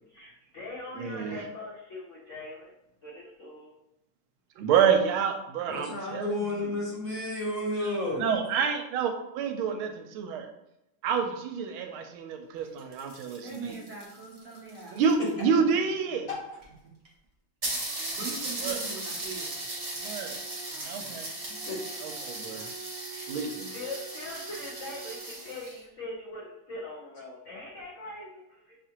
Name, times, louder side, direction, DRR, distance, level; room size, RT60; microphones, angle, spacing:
voice 1, 0.1-2.7 3.0-3.7 23.1-23.3 23.7-28.8, left 2 dB, 70° left, -5 dB, 0.7 m, -42 dB
voice 2, 1.0-1.4 4.6-6.7 8.1-10.5 11.0-13.7 14.9-16.3 18.6-18.8 20.0-20.4 20.8-21.3 22.0-22.7 23.3-23.7, right 6 dB, 85° right, 5 dB, 1.4 m, -28 dB
voice 3, 5.7-8.3 16.3-16.4 21.5-21.8, left 2 dB, 50° left, -4 dB, 1.2 m, -32 dB
sound 1, 12.6-15.4 16.3-16.4 16.6-16.7 17.0-17.1 17.6-25.8, right 2 dB, 45° right, 0.4 m, -37 dB
voice 4, 13.4-15.0 15.3-16.3 16.8-16.9 18.1-19.7 20.7-21.5, right 4 dB, 60° right, -5 dB, 0.9 m, -44 dB
6.0 x 2.5 x 2.9 m, 0.87 s
omnidirectional pair, 2.3 m